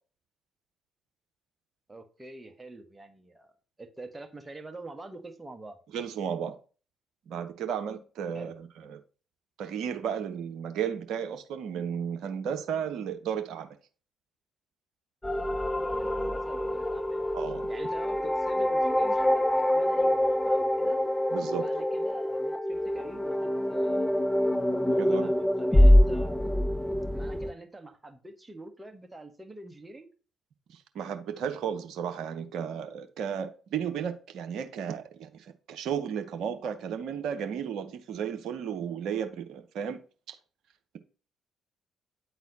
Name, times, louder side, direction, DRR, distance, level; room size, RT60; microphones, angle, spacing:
voice 1, 1.9-3.5 3.8-5.8 8.3-8.6 15.9-17.3 17.7-21.0 21.5-24.3 24.8-26.4 27.1-30.1, right 2 dB, 20° right, 1.6 m, -46 dB
voice 2, 5.9-6.6 7.3-9.0 9.6-13.8 17.3-17.7 21.3-21.7 25.0-25.3 30.7-40.0 40.3-40.4, right 8 dB, 65° right, 0.8 m, -34 dB
sound 1, 15.2-27.5, left 1 dB, 15° left, 0.6 m, -25 dB
9.3 x 4.1 x 4.0 m
hypercardioid pair, 45°, 0 cm